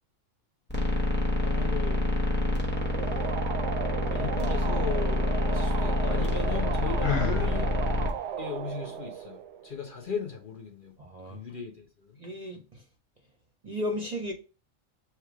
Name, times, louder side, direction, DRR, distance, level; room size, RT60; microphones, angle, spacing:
sound 1, 0.7-8.1, left 1 dB, 10° left, 0.8 m, -27 dB
voice 1, 1.4-2.0 4.1-7.7 8.4-10.9 11.3-12.1, left 5 dB, 45° left, 0.9 m, -37 dB
sound 2, 2.7-10.1, right 9 dB, 70° right, 0.8 m, -36 dB
Sigh, 7.0-7.5, left 6 dB, 80° left, 1.2 m, -29 dB
voice 2, 11.0-11.4 12.2-12.8 13.6-14.3, left 1 dB, 40° right, 0.7 m, -34 dB
3.5 x 3.0 x 4.7 m
omnidirectional pair, 1.3 m